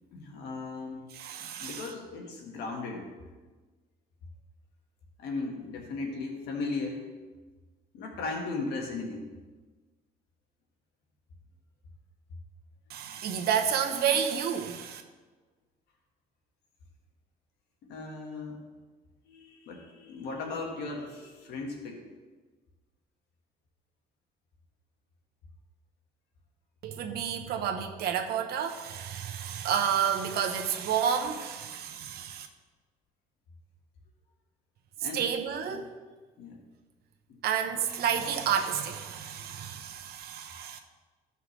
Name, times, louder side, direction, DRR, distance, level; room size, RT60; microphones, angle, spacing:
voice 1, 0.1-1.0 1.6-3.1 5.2-7.0 7.9-9.3 17.8-18.6 19.2-22.0 35.0-35.3 35.7-35.8 36.4-36.6 37.3-37.4, left 3 dB, 80° left, 1.6 m, -37 dB
voice 2, 1.1-1.8 12.9-15.0 26.8-32.5 35.1-35.9 37.4-40.8, right 8 dB, 70° right, 0.9 m, -30 dB
14.5 x 5.7 x 3.2 m
cardioid pair, 110°, 17 cm